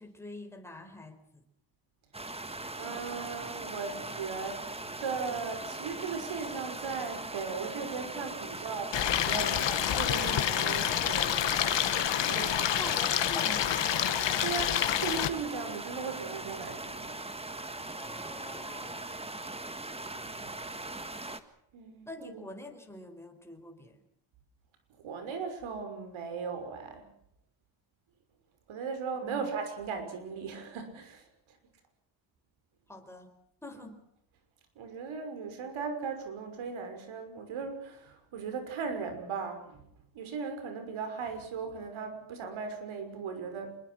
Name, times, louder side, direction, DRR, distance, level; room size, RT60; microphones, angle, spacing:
voice 1, 0.0-1.4 12.7-13.9 18.0-19.2 22.1-24.0 29.2-29.5 32.9-33.3 33.6-34.0, left 2 dB, 5° left, 3 dB, 4.8 m, -45 dB
sound 1, 2.1-21.4, right 2 dB, 10° right, 1.7 m, -40 dB
voice 2, 2.7-4.7 5.0-11.9 12.3-13.0 14.4-17.2 20.2-20.6 21.7-22.5 25.0-27.0 28.7-31.2 34.8-39.8 40.1-43.8, right 5 dB, 80° right, 8 dB, 6.0 m, -38 dB
Stream, 8.9-15.3, left 11 dB, 65° left, 1.8 m, -28 dB
26.0 x 22.0 x 6.2 m, 0.73 s
cardioid pair, 125°, 47 cm